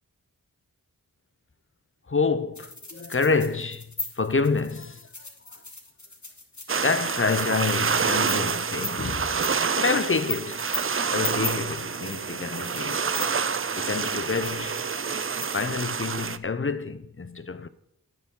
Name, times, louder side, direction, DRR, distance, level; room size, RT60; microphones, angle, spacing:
voice 1, 2.1-3.9 4.2-5.1 5.5-5.6 6.8-9.4 9.7-10.6 11.1-13.1 13.7-14.8 15.5-17.7, left 4 dB, 35° left, 0.7 m, -27 dB
sound 1, 2.5-16.1, left 3 dB, 55° left, 2.4 m, -38 dB
sound 2, 6.7-16.4, right 6 dB, 40° right, 0.5 m, -28 dB
10.0 x 9.1 x 3.8 m
wide cardioid pair, 40°, 35 cm